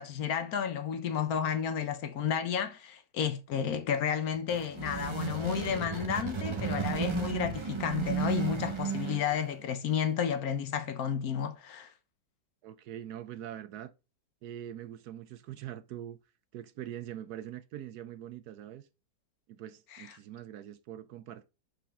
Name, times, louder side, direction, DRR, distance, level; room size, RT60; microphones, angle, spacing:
voice 1, 0.0-11.9 19.9-20.1, left 8 dB, 65° left, 1.1 m, -32 dB
sound 1, 4.3-9.6, right 7 dB, 30° right, 0.5 m, -34 dB
voice 2, 12.6-13.9 14.4-16.2 16.5-18.8 19.5-21.5, right 11 dB, 70° right, 1.0 m, -43 dB
6.0 x 5.1 x 3.6 m
omnidirectional pair, 1.9 m